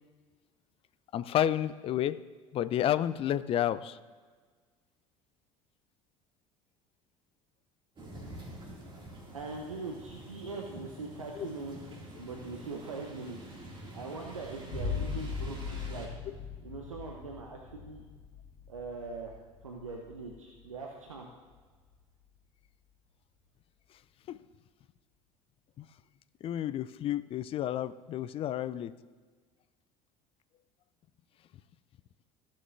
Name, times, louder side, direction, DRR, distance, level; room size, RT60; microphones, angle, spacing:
voice 1, 1.1-2.2 2.5-4.0 11.4-11.5 24.3-24.4 25.8-25.9 26.4-28.9, left 11 dB, 35° left, 15 dB, 0.4 m, -30 dB
sound 1, 8.0-16.1, right 1 dB, 30° right, 2.2 m, -47 dB
voice 2, 9.3-11.8 12.2-13.4 13.9-16.1 16.6-18.0 18.7-19.3 19.6-21.3, right 3 dB, 85° right, 1 dB, 0.8 m, -41 dB
sound 2, 14.7-22.1, left 5 dB, 50° left, 1.7 m, -40 dB
15.0 x 7.3 x 2.6 m, 1.5 s
figure-of-eight pair, 65°, 17 cm